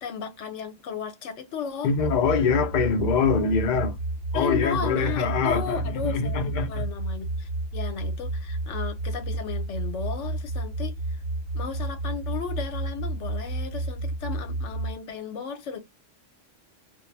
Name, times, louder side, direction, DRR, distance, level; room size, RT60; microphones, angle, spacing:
voice 1, 0.0-1.9 4.3-11.2 11.5-15.8, left 6 dB, 75° left, 1.0 m, -34 dB
voice 2, 1.8-4.0 4.3-6.7, left 5 dB, 55° left, 0.5 m, -24 dB
sound 1, 1.9-14.9, right 2 dB, 25° right, 1.0 m, -31 dB
2.3 x 2.1 x 3.1 m
omnidirectional pair, 1.3 m